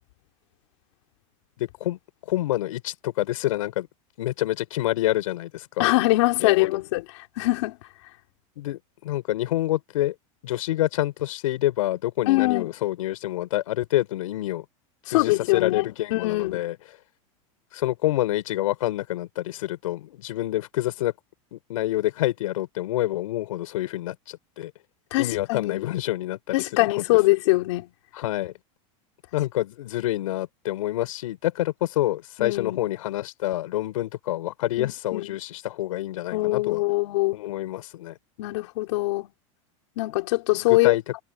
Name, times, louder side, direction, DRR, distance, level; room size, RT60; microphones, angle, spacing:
voice 1, 1.6-2.0 2.3-3.9 4.2-5.9 6.4-6.7 8.6-10.1 10.4-14.6 15.1-16.8 17.7-21.1 21.5-24.7 25.2-27.2 28.1-28.5 29.3-36.8 37.3-38.2 40.6-41.0, left 15 dB, 80° left, 5.9 m, -27 dB
voice 2, 5.8-7.0 7.4-7.8 12.3-12.7 15.1-16.6 25.1-25.9 26.5-27.9 32.4-32.8 34.8-35.4 36.3-37.4 38.4-39.3 40.0-41.0, left 20 dB, 60° left, 4.0 m, -23 dB
supercardioid pair, 165°, 17 cm